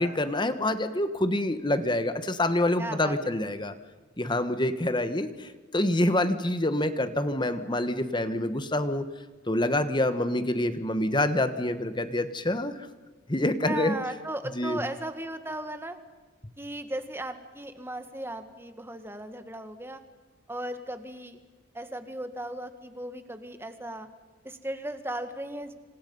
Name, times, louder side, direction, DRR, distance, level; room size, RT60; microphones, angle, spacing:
voice 1, 0.0-3.7 4.2-9.1 9.5-12.7 13.3-13.9 14.6-14.8, left 1 dB, 20° left, 11 dB, 1.4 m, -26 dB
voice 2, 2.8-3.3 13.6-16.0 16.6-20.0 20.5-21.4 21.7-24.1 24.4-25.7, right 1 dB, 10° right, 8 dB, 1.7 m, -36 dB
28.0 x 26.5 x 5.5 m, 1.3 s
head